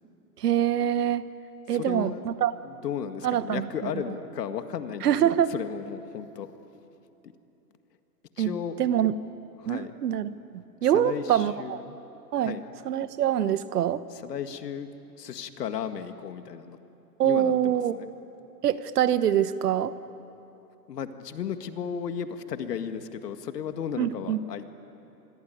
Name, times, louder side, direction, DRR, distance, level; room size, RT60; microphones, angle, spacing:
voice 1, 0.4-1.3 1.7-2.5 3.2-3.9 5.0-5.5 8.4-9.1 9.7-11.8 12.3-12.6 12.8-14.0 17.2-18.0 18.6-19.9 24.0-24.4, right 10 dB, 70° right, 14 dB, 1.3 m, -25 dB
voice 2, 1.7-2.2 2.6-6.5 7.2-7.3 8.4-8.8 9.6-9.9 10.9-12.0 12.4-12.7 14.1-14.9 15.2-16.8 17.2-18.1 20.9-24.7, left 8 dB, 75° left, 8 dB, 2.0 m, -35 dB
26.0 x 22.0 x 9.4 m, 2.9 s
hypercardioid pair, 130°, 48 cm